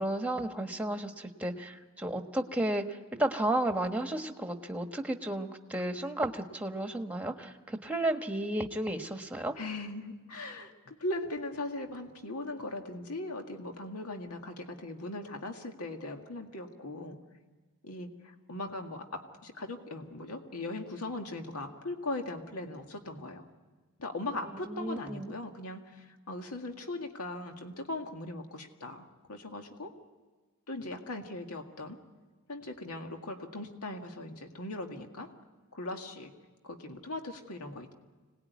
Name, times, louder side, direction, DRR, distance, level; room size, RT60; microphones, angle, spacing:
voice 1, 0.0-9.5 24.5-25.3, right 1 dB, 5° right, 5 dB, 1.3 m, -33 dB
voice 2, 9.6-17.2 17.8-23.4 24.0-29.0 29.3-29.9 30.7-32.0 32.5-35.3 35.7-36.3 36.6-37.9, left 2 dB, 80° left, 4 dB, 2.0 m, -39 dB
26.0 x 19.0 x 9.4 m, 1.4 s
head